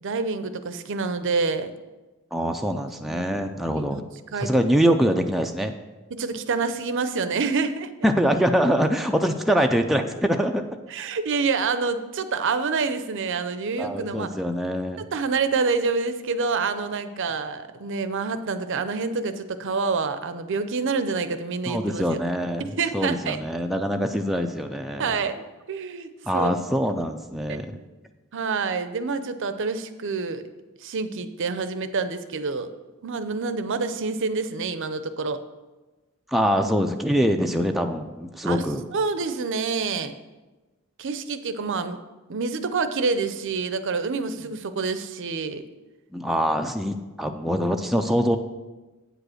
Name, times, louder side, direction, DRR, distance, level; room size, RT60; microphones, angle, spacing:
voice 1, 0.0-1.7 3.1-3.4 3.7-4.0 4.3-4.6 6.1-7.9 10.9-14.3 15.1-22.2 22.6-23.4 25.0-25.4 25.7-26.5 27.5-27.6 28.3-30.4 30.8-32.7 33.0-35.4 38.5-38.6 38.9-40.1 41.0-42.0 42.3-45.6, right 4 dB, 60° right, 11 dB, 0.6 m, -27 dB
voice 2, 2.3-4.0 4.4-5.7 8.0-10.6 13.8-15.0 21.7-25.1 26.3-27.8 36.3-38.8 46.1-48.4, equal, ahead, 3 dB, 0.4 m, -24 dB
8.9 x 5.0 x 6.4 m, 1.1 s
head